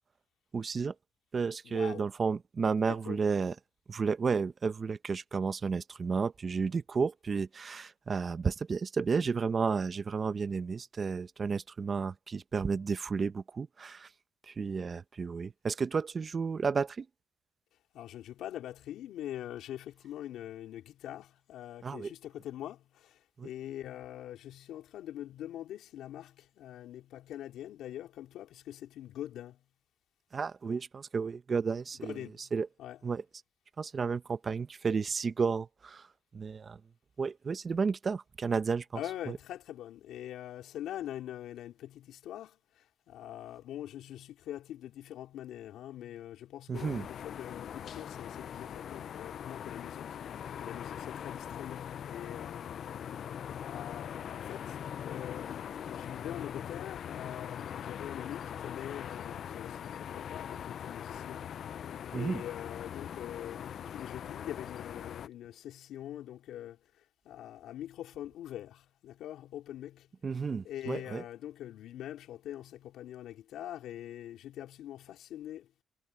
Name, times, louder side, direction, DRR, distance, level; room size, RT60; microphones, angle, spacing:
voice 1, 0.5-0.9 1.3-3.5 3.9-14.1 14.4-17.1 21.8-22.1 23.4-23.5 30.3-32.2 32.5-32.7 33.0-33.2 33.8-36.1 36.3-36.8 37.2-39.0 39.3-39.4 46.7-47.1 62.1-62.4 70.2-71.2, right 5 dB, 40° right, 1.0 m, -32 dB
voice 2, 1.6-2.1 2.9-3.2 17.9-29.6 31.9-32.5 32.8-33.1 38.9-52.8 53.6-54.8 55.0-61.5 62.1-70.1 70.6-75.8, left 12 dB, 80° left, 3.6 m, -44 dB
sound 1, 46.7-65.3, left 9 dB, 65° left, 0.5 m, -41 dB
cardioid pair, 90°, 0 cm